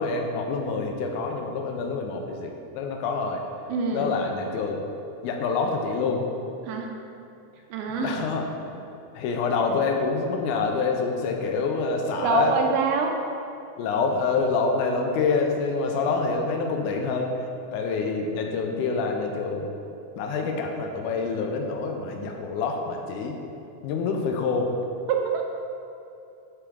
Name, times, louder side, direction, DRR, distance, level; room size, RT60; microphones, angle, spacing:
voice 1, 0.0-3.4 3.9-4.9 5.2-6.3 8.0-8.4 8.7-8.8 9.1-12.5 13.8-17.4 17.7-19.7 20.2-23.4 23.8-24.7, left 4 dB, 80° left, 2 dB, 2.0 m, -26 dB
voice 2, 3.7-4.2 6.6-6.9 7.7-8.3 12.2-13.2 25.1-25.4, right 5 dB, 85° right, 2 dB, 2.2 m, -26 dB
9.8 x 3.6 x 3.5 m, 2.7 s
omnidirectional pair, 3.6 m